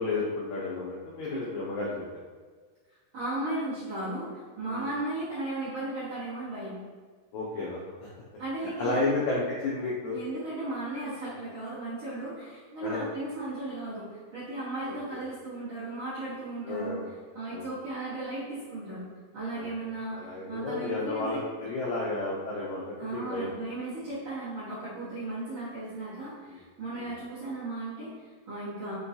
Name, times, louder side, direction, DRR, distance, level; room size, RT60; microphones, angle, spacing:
voice 1, 0.0-2.0 4.7-4.9 7.3-8.1 8.8-10.2 12.8-13.1 14.9-15.2 16.6-17.1 17.5-17.6 19.5-19.7 20.1-23.5 24.0-24.1 26.5-26.6 27.0-27.1, left 2 dB, 85° left, -5 dB, 1.6 m, -32 dB
voice 2, 3.1-6.8 8.4-9.4 10.1-19.1 19.3-21.4 23.0-28.9, right 2 dB, 60° right, -12 dB, 1.6 m, -36 dB
5.2 x 2.2 x 2.6 m, 1.5 s
omnidirectional pair, 3.9 m